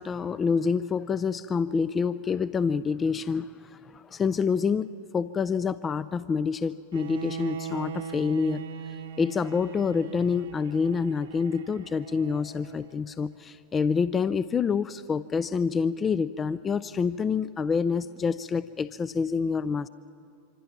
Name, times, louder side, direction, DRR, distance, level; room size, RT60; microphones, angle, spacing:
voice 1, 0.0-4.9 5.1-8.6 9.2-19.9, left 5 dB, 20° left, 16 dB, 0.5 m, -27 dB
Bowed string instrument, 6.9-13.0, right 7 dB, 60° right, 1.1 m, -40 dB
26.0 x 26.0 x 5.9 m, 2.8 s
figure-of-eight pair, 90°, 0 cm